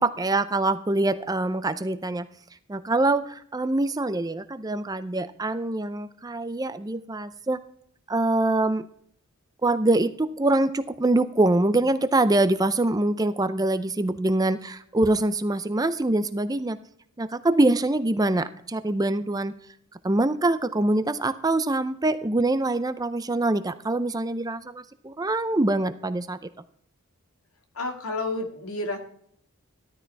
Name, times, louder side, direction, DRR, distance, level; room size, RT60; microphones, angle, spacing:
voice 1, 0.0-2.3 2.7-7.6 8.1-8.9 9.6-16.8 17.2-19.5 20.0-26.4, right 2 dB, 15° right, 12 dB, 0.5 m, -24 dB
voice 2, 27.8-29.0, left 2 dB, 75° left, 4 dB, 2.1 m, -30 dB
13.5 x 12.5 x 3.4 m, 0.65 s
head